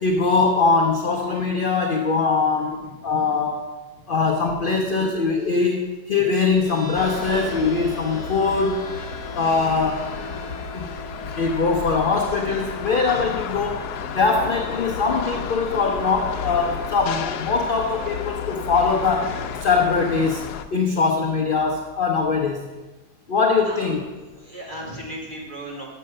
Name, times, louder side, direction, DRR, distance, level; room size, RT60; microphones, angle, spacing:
voice 1, 0.0-2.8 3.0-3.7 4.1-8.9 9.3-10.1 10.7-10.9 11.2-19.3 19.6-22.7 23.3-24.0, left 4 dB, 50° left, 2 dB, 0.6 m, -22 dB
sound 1, 6.6-18.6, right 3 dB, 75° right, 4.3 m, -43 dB
sound 2, 6.9-20.6, left 7 dB, 75° left, 1.1 m, -32 dB
voice 2, 23.7-24.0 24.4-25.9, right 1 dB, 30° right, -4 dB, 2.2 m, -35 dB
7.5 x 6.6 x 6.5 m, 1.2 s
omnidirectional pair, 1.8 m